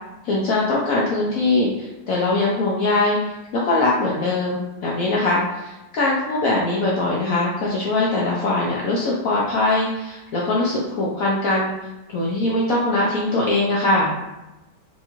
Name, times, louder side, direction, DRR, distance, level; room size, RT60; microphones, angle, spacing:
voice 1, 0.2-11.7 12.1-14.1, left 2 dB, 75° left, -4 dB, 0.8 m, -21 dB
4.1 x 2.3 x 2.9 m, 0.99 s
omnidirectional pair, 2.0 m